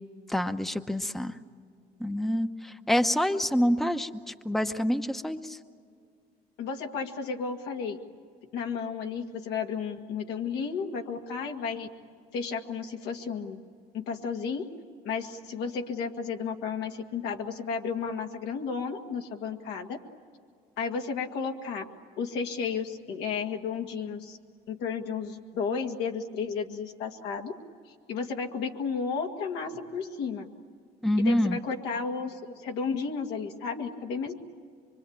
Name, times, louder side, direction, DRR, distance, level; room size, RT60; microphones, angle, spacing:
voice 1, 0.3-1.4 2.0-5.6 31.0-31.6, equal, ahead, 8 dB, 0.9 m, -27 dB
voice 2, 6.6-8.0 8.5-11.9 12.3-13.6 13.9-14.6 15.0-20.0 20.8-21.9 22.2-24.4 24.7-27.5 28.1-30.5 31.2-34.3, left 5 dB, 85° left, 3 dB, 2.1 m, -33 dB
25.0 x 24.0 x 8.8 m, 2.2 s
cardioid pair, 110°, 17 cm